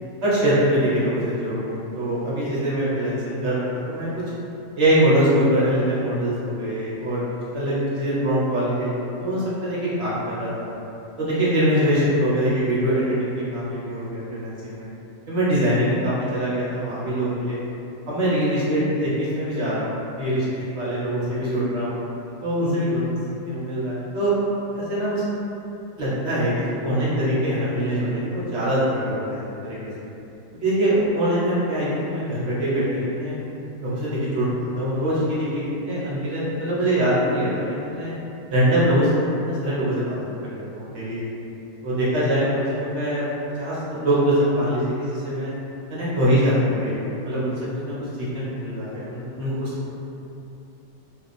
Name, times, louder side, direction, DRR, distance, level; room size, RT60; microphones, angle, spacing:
voice 1, 0.2-4.1 4.8-7.2 7.5-10.6 11.2-14.9 15.3-17.6 18.1-21.9 22.4-23.0 23.5-24.3 24.7-25.2 26.0-29.8 30.5-33.4 33.8-38.1 38.5-40.2 40.4-41.3 41.8-43.3 43.6-45.5 45.9-47.6 47.9-48.0 48.3-49.9, equal, 50° right, -9 dB, 0.9 m, -23 dB
2.8 x 2.4 x 3.9 m, 2.9 s
omnidirectional pair, 1.9 m